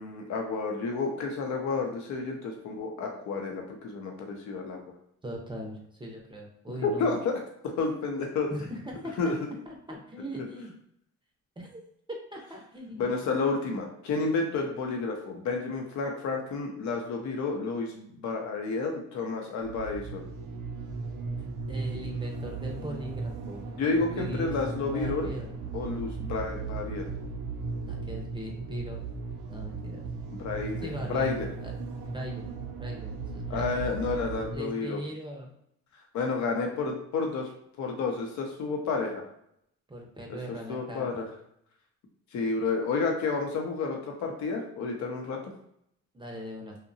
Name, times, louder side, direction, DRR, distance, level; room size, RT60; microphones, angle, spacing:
voice 1, 0.0-4.8 6.8-8.5 9.2-9.3 13.0-20.2 23.8-25.3 25.7-27.1 30.3-31.5 33.5-35.0 36.1-37.5 37.8-39.2 40.3-40.4 40.7-41.2 42.3-45.4, left 4 dB, 70° left, 2 dB, 0.6 m, -30 dB
voice 2, 5.2-7.1 8.5-9.2 9.7-10.8 11.6-11.8 12.3-13.3 21.7-23.6 24.1-24.5 24.9-25.5 27.9-29.0 29.5-30.0 30.8-31.7 32.1-32.5 32.8-33.7 34.5-35.5 39.9-41.3 46.1-46.8, equal, 15° right, 0 dB, 0.5 m, -39 dB
sound 1, 19.6-34.6, right 4 dB, 85° right, 0.5 m, -36 dB
2.7 x 2.1 x 2.6 m, 0.74 s
cardioid pair, 90°, 30 cm